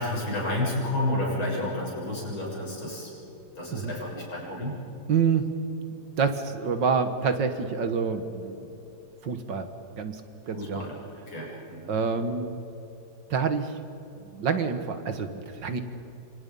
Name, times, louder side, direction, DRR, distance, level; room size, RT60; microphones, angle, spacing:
voice 1, 0.0-3.1 3.6-4.8 10.5-10.9 11.3-11.9, left 1 dB, 70° left, -3 dB, 8.3 m, -30 dB
voice 2, 5.1-5.5 6.2-8.7 9.2-9.7 10.0-10.2 10.5-10.9 11.9-12.5 13.3-13.8 14.3-15.8, right 6 dB, 60° right, 9 dB, 2.0 m, -27 dB
28.0 x 26.0 x 5.5 m, 3.0 s
omnidirectional pair, 2.3 m